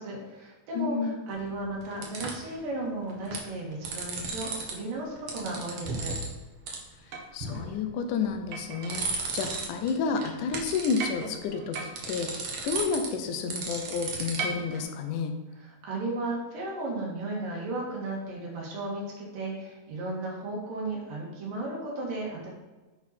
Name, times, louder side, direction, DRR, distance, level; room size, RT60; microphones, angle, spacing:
voice 1, 0.0-6.1 15.6-22.5, right 2 dB, 80° right, -3 dB, 3.6 m, -35 dB
voice 2, 0.7-1.2 7.3-9.0 9.3-15.3, left 5 dB, 75° left, 6 dB, 2.1 m, -30 dB
sound 1, 1.3-2.5 3.1-3.5 3.7-4.7 5.0-6.3 6.7-6.8 7.1-7.7 8.2-9.9 10.2-14.8, right 4 dB, 65° right, 1.3 m, -34 dB
9.6 x 4.2 x 4.3 m, 1.2 s
omnidirectional pair, 3.9 m